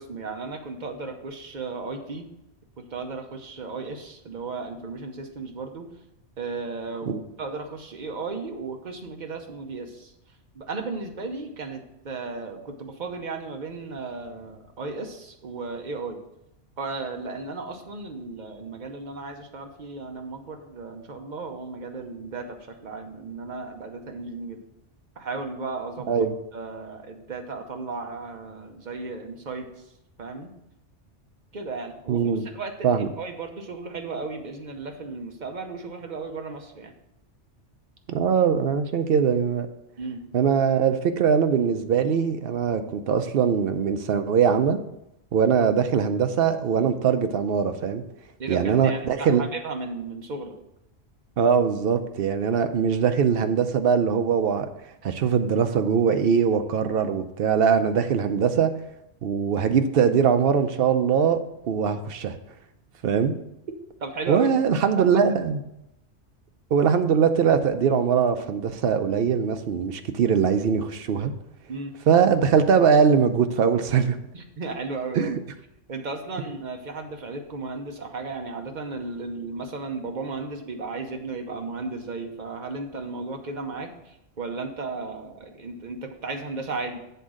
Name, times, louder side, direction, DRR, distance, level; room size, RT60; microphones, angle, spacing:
voice 1, 0.0-2.3 2.8-5.9 6.4-10.1 10.5-16.2 16.8-24.6 25.2-26.2 26.5-29.7 30.2-30.5 31.5-36.9 40.0-40.2 48.4-50.6 64.0-64.5 71.7-71.9 74.3-75.4 75.9-87.0, right 3 dB, 45° right, 4 dB, 1.0 m, -35 dB
voice 2, 32.1-32.4 32.8-33.1 38.1-39.7 40.3-44.8 45.3-48.0 48.5-49.4 51.4-54.7 55.0-58.7 59.2-61.4 61.7-62.3 63.0-63.4 64.3-65.6 66.7-71.3 72.1-74.2 75.1-75.4, right 7 dB, 60° right, 8 dB, 0.7 m, -21 dB
8.0 x 3.7 x 6.3 m, 0.84 s
omnidirectional pair, 1.2 m